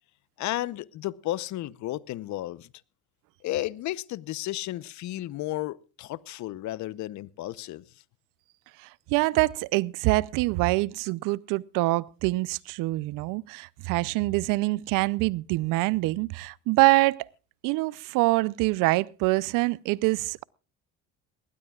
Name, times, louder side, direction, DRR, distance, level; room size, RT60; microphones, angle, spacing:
voice 1, 0.4-2.7 3.4-7.8, left 15 dB, 65° left, 0.9 m, -33 dB
voice 2, 8.8-17.2 17.6-20.4, right 21 dB, 80° right, 0.7 m, -25 dB
20.5 x 18.5 x 2.4 m
supercardioid pair, 90°, 32 cm